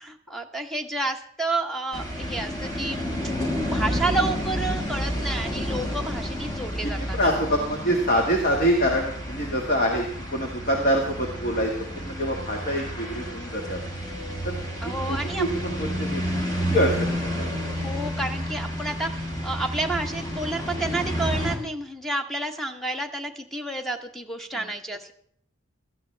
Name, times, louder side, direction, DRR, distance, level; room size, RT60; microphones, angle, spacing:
voice 1, 0.0-3.1 3.6-7.3 14.8-15.5 17.7-25.1, right 2 dB, ahead, 5 dB, 0.9 m, -30 dB
sound 1, 1.9-21.6, equal, 20° left, 1.7 m, -30 dB
voice 2, 6.8-13.8 14.4-14.6 14.8-16.2 16.7-17.6 24.5-24.6, equal, 40° left, 1 dB, 1.6 m, -25 dB
17.5 x 13.5 x 3.3 m, 0.64 s
head